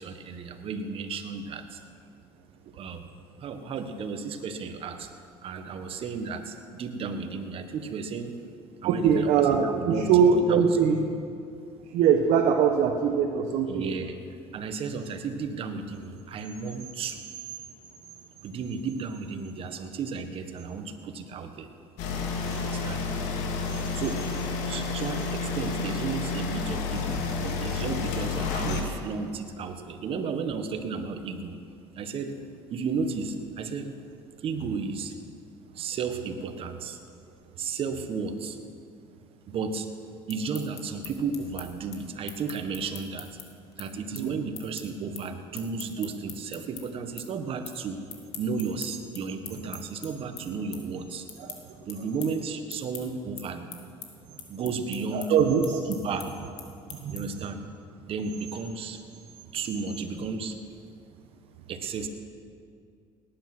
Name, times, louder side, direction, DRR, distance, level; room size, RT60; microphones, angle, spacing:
voice 1, 0.0-1.8 2.7-3.1 3.4-5.1 5.4-8.3 8.8-10.7 13.7-14.2 14.5-17.2 18.4-21.7 22.6-23.0 23.9-24.3 24.6-31.6 31.9-32.3 32.7-33.9 34.4-35.1 35.7-37.0 37.6-38.6 39.5-39.9 40.3-43.4 43.8-48.0 48.4-51.3 51.9-53.9 54.5-55.4 55.9-56.4 57.1-57.6 58.1-59.0 59.5-60.6 61.7-62.1, right 5 dB, 50° right, 7 dB, 1.5 m, -33 dB
voice 2, 8.8-11.0 11.9-13.8 44.2-44.3 51.4-51.5 55.1-55.8 57.0-57.2, right 7 dB, 70° right, 3 dB, 1.2 m, -22 dB
sound 1, 22.0-28.8, left 4 dB, 80° left, 2.1 m, -30 dB
sound 2, 40.1-46.8 47.2-47.8 48.1-57.5, left 9 dB, 60° left, 2.3 m, -43 dB
18.0 x 10.5 x 6.2 m, 2.3 s
supercardioid pair, 90°, 12 cm